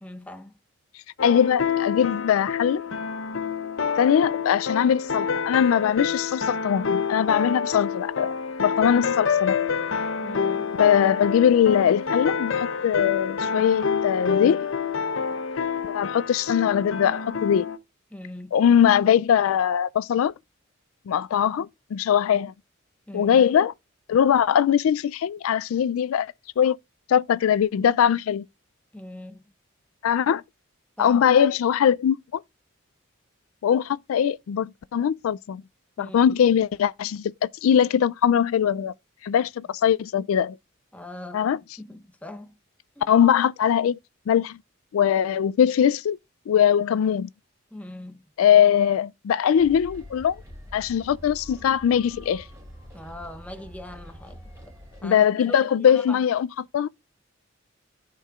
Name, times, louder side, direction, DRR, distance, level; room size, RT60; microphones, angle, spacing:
voice 1, 0.0-0.6 10.2-10.7 18.1-18.6 23.1-23.5 28.9-29.4 31.0-31.2 36.0-36.3 40.9-41.5 41.8-42.6 43.0-43.1 47.7-48.2 52.9-54.7 55.0-56.2, left 1 dB, 5° left, 0.7 m, -41 dB
voice 2, 1.2-2.8 4.0-8.3 8.6-9.5 10.8-14.7 15.9-17.6 18.5-20.3 21.1-22.5 23.1-23.7 24.1-26.8 27.1-28.4 30.0-30.4 31.0-32.4 33.6-35.6 36.0-38.9 39.2-40.6 41.3-41.6 43.1-44.0 44.3-44.6 44.9-46.2 46.5-47.3 48.4-50.3 50.7-52.4 55.0-56.5 56.7-56.9, left 8 dB, 90° left, 0.3 m, -21 dB
sound 1, 1.2-17.8, left 6 dB, 70° left, 0.7 m, -27 dB
sound 2, 49.6-55.1, equal, 15° right, 3.3 m, -45 dB
13.0 x 4.6 x 2.4 m
head